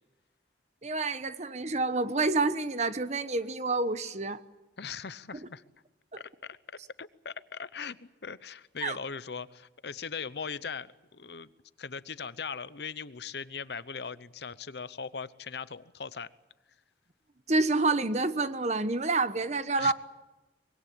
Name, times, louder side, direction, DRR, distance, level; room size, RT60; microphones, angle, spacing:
voice 1, 0.8-4.4 8.8-9.0 17.5-19.9, right 3 dB, 40° right, 1.0 m, -28 dB
voice 2, 4.8-5.6 6.2-6.6 7.0-11.5 11.8-16.3 19.8-19.9, left 6 dB, 65° left, 0.8 m, -39 dB
24.5 x 21.5 x 8.6 m
head